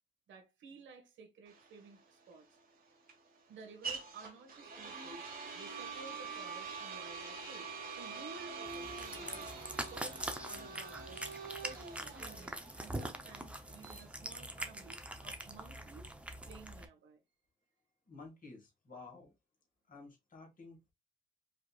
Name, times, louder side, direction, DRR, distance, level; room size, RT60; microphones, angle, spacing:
voice 1, 0.3-2.5 3.5-9.6 9.9-11.2 11.6-16.1 16.4-17.2, right 4 dB, 70° right, 1.5 m, -54 dB
sound 1, 1.5-15.3, right 5 dB, 45° right, 1.6 m, -46 dB
Cat, 8.7-16.8, right 1 dB, 5° right, 0.7 m, -44 dB
voice 2, 18.1-19.3 19.9-20.9, left 3 dB, 45° left, 1.9 m, -53 dB
5.1 x 2.9 x 2.4 m
cardioid pair, 90°, 20 cm